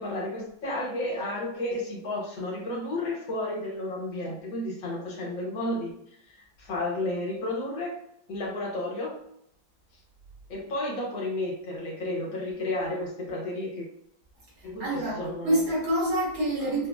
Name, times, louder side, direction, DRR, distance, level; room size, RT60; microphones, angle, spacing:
voice 1, 0.0-5.9 6.3-8.0 8.3-9.2 10.5-13.9 14.6-15.6 16.6-16.7, left 1 dB, 70° left, -3 dB, 1.6 m, -32 dB
voice 2, 14.8-16.9, right 1 dB, 85° right, -6 dB, 2.5 m, -27 dB
5.5 x 2.0 x 2.3 m, 0.73 s
omnidirectional pair, 2.3 m